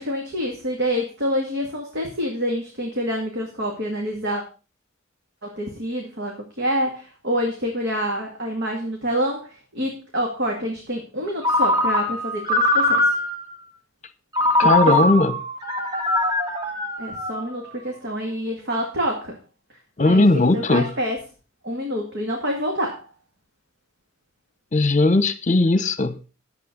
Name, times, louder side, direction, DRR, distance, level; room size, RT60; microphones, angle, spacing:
voice 1, 0.0-4.4 5.4-13.1 14.6-14.9 17.0-19.4 20.0-21.2 21.6-23.1, equal, 55° right, 2.1 m, -27 dB
Ringtone, 11.4-13.5 14.3-17.7, left 1 dB, 20° right, 1.7 m, -22 dB
voice 2, 14.6-15.3 20.0-20.9 24.7-26.2, left 2 dB, 35° left, 1.0 m, -18 dB
11.0 x 7.6 x 5.3 m
head